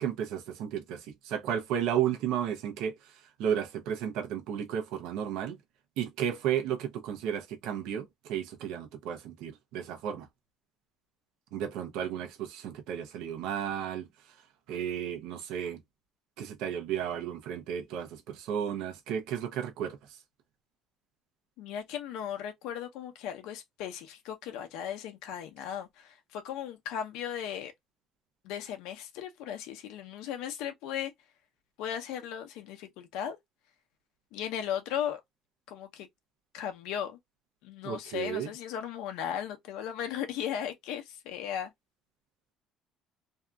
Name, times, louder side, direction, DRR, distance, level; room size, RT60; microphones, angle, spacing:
voice 1, 0.0-3.0 3.4-5.6 6.0-10.3 11.5-14.1 14.7-15.8 16.4-20.0 37.8-38.5, right 9 dB, 75° right, 0.7 m, -33 dB
voice 2, 21.6-27.7 28.4-31.1 31.8-33.4 34.3-35.2 35.7-36.1 36.5-37.2 37.6-41.7, left 9 dB, 85° left, 0.7 m, -36 dB
2.7 x 2.4 x 2.3 m
cardioid pair, 160°, 0 cm